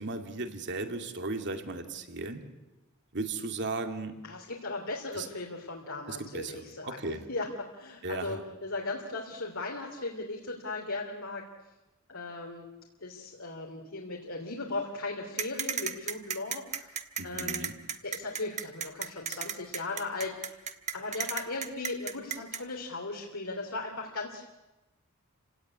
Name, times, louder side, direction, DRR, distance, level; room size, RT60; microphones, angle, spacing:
voice 1, 0.0-2.5 3.1-4.2 5.1-5.3 6.1-7.3 8.0-8.4 17.2-17.8, right 3 dB, 55° right, 5 dB, 2.4 m, -36 dB
voice 2, 4.2-11.4 12.1-12.6 13.0-17.0 17.2-17.6 18.0-20.6 20.9-24.5, left 3 dB, 65° left, 0 dB, 3.1 m, -37 dB
sound 1, 15.4-22.6, right 7 dB, 30° right, 1.3 m, -34 dB
29.5 x 17.5 x 9.7 m, 1.1 s
head